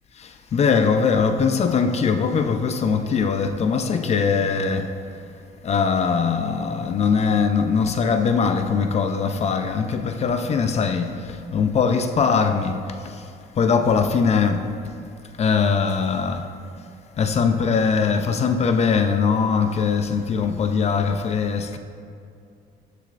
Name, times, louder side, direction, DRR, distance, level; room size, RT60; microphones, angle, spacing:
voice 1, 0.2-4.9 5.6-13.2 13.6-14.7 15.4-16.5 17.2-21.8, left 5 dB, 40° left, 0.6 m, -21 dB
14.5 x 6.6 x 2.5 m
cardioid pair, 110°, 17 cm